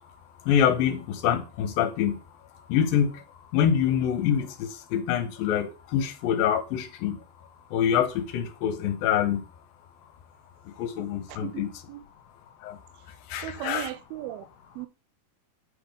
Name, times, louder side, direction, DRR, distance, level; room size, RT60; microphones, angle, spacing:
voice 1, 0.5-2.2 2.7-3.1 3.5-4.5 4.9-7.2 7.7-9.4 10.8-11.7 13.3-13.9, left 9 dB, 75° left, 2.4 m, -25 dB
voice 2, 11.3-12.0 13.4-14.5 14.8-14.9, right 14 dB, 80° right, 2.5 m, -37 dB
8.4 x 5.1 x 5.2 m
omnidirectional pair, 4.4 m